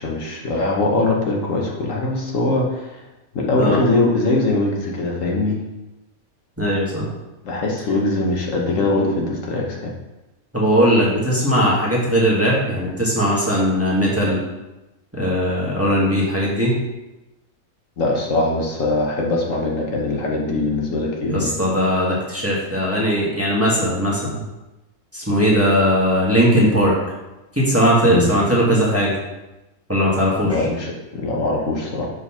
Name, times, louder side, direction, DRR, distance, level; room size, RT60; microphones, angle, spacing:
voice 1, 0.0-3.0 3.3-5.6 7.4-9.9 18.0-21.6 28.0-28.3 30.4-32.1, left 2 dB, 65° left, -1 dB, 1.3 m, -22 dB
voice 2, 6.6-7.1 10.5-14.4 15.1-16.7 21.3-24.4 25.1-27.0 27.5-29.2 29.9-30.6, equal, 10° right, -6 dB, 1.3 m, -19 dB
4.9 x 4.0 x 5.6 m, 1.0 s
omnidirectional pair, 1.5 m